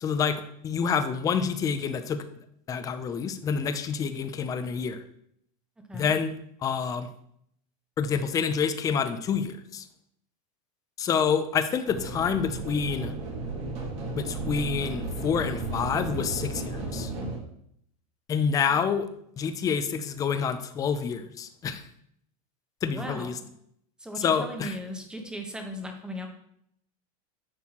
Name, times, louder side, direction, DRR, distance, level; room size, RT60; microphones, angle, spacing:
voice 1, 0.0-2.3 2.7-5.0 5.9-6.3 6.6-7.1 8.0-9.9 11.0-13.1 14.2-17.1 18.3-19.1 19.4-21.8 22.8-23.3 24.2-24.7, left 6 dB, 20° left, 10 dB, 0.4 m, -28 dB
sound 1, 11.9-17.4, right 2 dB, 35° right, 1.7 m, -34 dB
voice 2, 22.9-23.4 24.0-26.3, equal, 5° right, 4 dB, 0.9 m, -37 dB
9.5 x 6.2 x 2.9 m, 0.71 s
supercardioid pair, 160°, 19 cm